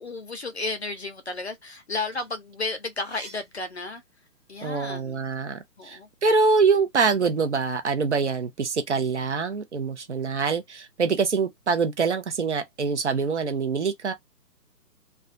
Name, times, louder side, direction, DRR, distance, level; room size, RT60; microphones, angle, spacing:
voice 1, 0.0-4.0 4.5-5.2 5.8-6.1, left 3 dB, 45° left, 0.5 m, -33 dB
sound 1, 2.1-4.5 5.0-6.4, right 3 dB, ahead, 0.7 m, -52 dB
voice 2, 4.6-14.1, right 4 dB, 45° right, 0.6 m, -25 dB
2.4 x 2.2 x 2.4 m
hypercardioid pair, 160°, 48 cm